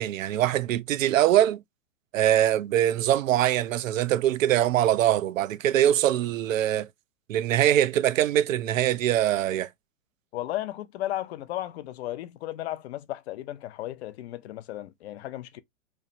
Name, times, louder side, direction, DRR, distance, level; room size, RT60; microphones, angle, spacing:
voice 1, 0.0-1.6 2.1-6.9 7.3-9.7, right 12 dB, 80° right, 0.5 m, -23 dB
voice 2, 10.3-15.6, left 14 dB, 55° left, 0.5 m, -34 dB
3.1 x 2.0 x 2.5 m
hypercardioid pair, 125°, 39 cm